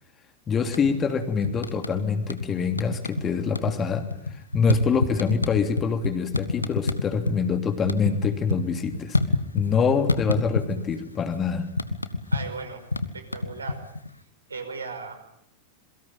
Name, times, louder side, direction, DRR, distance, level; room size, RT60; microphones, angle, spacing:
voice 1, 0.5-4.1 4.5-9.2 9.5-11.7, left 5 dB, 25° left, 7 dB, 3.1 m, -25 dB
sound 1, 0.6-1.1 1.4-2.5 2.7-3.2 3.5-7.4 7.7-9.8 10.1-10.9 11.2-14.1, left 3 dB, 80° left, 1.7 m, -27 dB
voice 2, 12.3-12.8 13.1-13.8 14.5-15.4, right 4 dB, 75° right, 6 dB, 5.5 m, -36 dB
27.5 x 23.5 x 8.9 m, 0.75 s
figure-of-eight pair, 90°, 0 cm